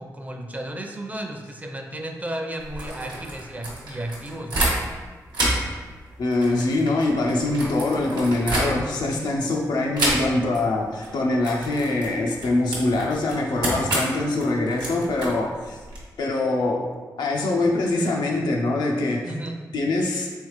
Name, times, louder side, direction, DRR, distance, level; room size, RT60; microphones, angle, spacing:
voice 1, 0.0-4.7 19.2-19.6, right 1 dB, 20° right, 3 dB, 0.5 m, -33 dB
sound 1, 2.6-5.0 5.3-9.1 9.9-10.6 10.9-11.1 11.4-16.0, right 1 dB, 85° right, 1.1 m, -29 dB
voice 2, 6.2-15.8 16.2-16.9 17.2-19.3 19.7-20.3, left 2 dB, 85° left, -1 dB, 0.5 m, -23 dB
3.5 x 3.3 x 3.2 m, 1.4 s
cardioid pair, 55°, 7 cm